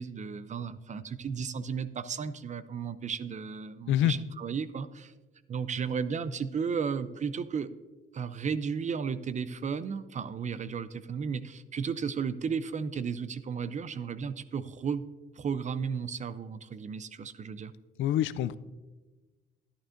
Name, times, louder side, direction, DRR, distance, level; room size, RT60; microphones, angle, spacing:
voice 1, 0.0-5.1 5.5-7.7 8.1-15.0 15.4-17.7, right 6 dB, 35° right, 14 dB, 0.5 m, -34 dB
voice 2, 18.0-18.6, left 12 dB, 75° left, 16 dB, 0.4 m, -26 dB
11.5 x 11.0 x 2.6 m, 1.2 s
cardioid pair, 90°, 20 cm